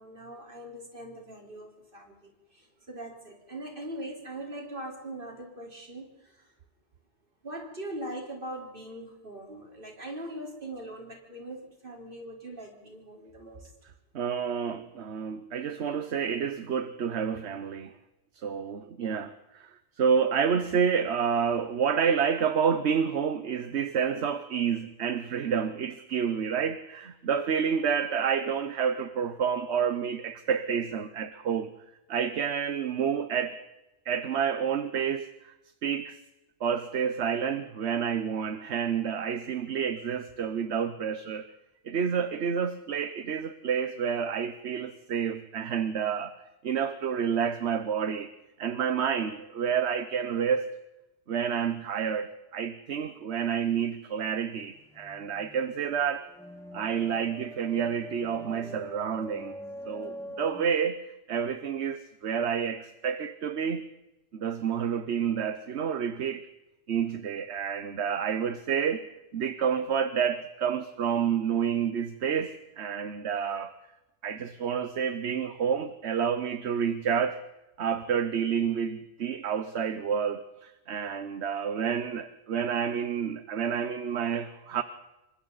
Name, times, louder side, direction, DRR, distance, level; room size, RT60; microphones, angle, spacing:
voice 1, 0.0-6.5 7.4-13.7, right 1 dB, 45° right, 4.4 m, -41 dB
voice 2, 14.1-17.9 18.3-19.7 20.0-31.7 32.1-33.6 34.1-35.5 35.8-36.2 36.6-41.5 41.8-46.3 46.6-48.3 48.6-50.7 51.3-56.3 56.7-59.6 59.9-63.9 64.3-66.5 66.9-69.1 69.3-73.7 74.2-77.4 77.8-84.8, right 7 dB, 65° right, 1.2 m, -29 dB
sound 1, 54.8-60.6, equal, ahead, 1.7 m, -43 dB
27.0 x 24.0 x 4.1 m
omnidirectional pair, 1.2 m